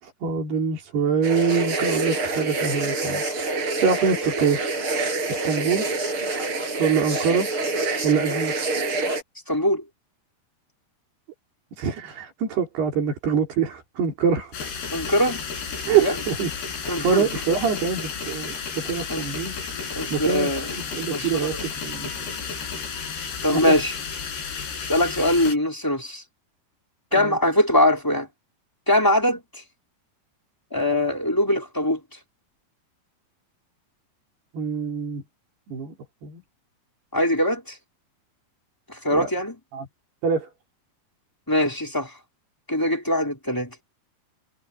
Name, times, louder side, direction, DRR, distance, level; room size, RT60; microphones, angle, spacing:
voice 1, 0.0-3.2 3.5-4.6 5.4-6.0 6.8-7.5 8.0-8.6 11.8-14.5 15.9-16.5 16.8-19.5 20.1-22.3 23.5-23.6 27.1-27.4 34.5-35.2 35.7-35.9 36.2-36.4 39.1-39.3 39.7-39.9 40.2-40.5, right 6 dB, 75° right, 6.2 m, -25 dB
sound 1, 1.2-9.2, right 3 dB, 30° right, 6.9 m, -26 dB
voice 2, 9.5-9.8 14.9-15.4 16.0-16.1 16.9-17.3 19.1-19.2 19.9-20.7 21.1-21.6 23.4-23.9 24.9-26.2 27.1-28.3 28.9-29.6 30.7-32.0 37.1-37.7 38.9-39.5 41.5-42.1 42.7-43.7, left 1 dB, 5° left, 3.5 m, -22 dB
sound 2, 14.5-25.6, left 6 dB, 75° left, 6.9 m, -32 dB
omnidirectional pair, 4.7 m